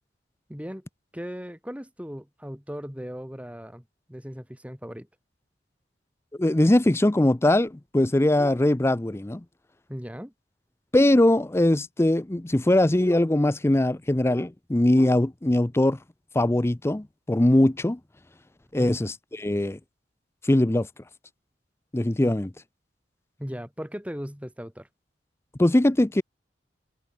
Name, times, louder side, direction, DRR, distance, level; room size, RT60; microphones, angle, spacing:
voice 1, 0.5-0.8 1.1-3.8 4.1-5.1 9.9-10.3 18.8-19.0 22.2-22.3 23.4-24.9, equal, 5° right, 5.8 m, -37 dB
voice 2, 6.4-9.4 10.9-16.0 16.3-18.0 18.7-19.8 20.4-20.9 21.9-22.5 25.6-26.2, left 1 dB, 15° left, 0.5 m, -21 dB
head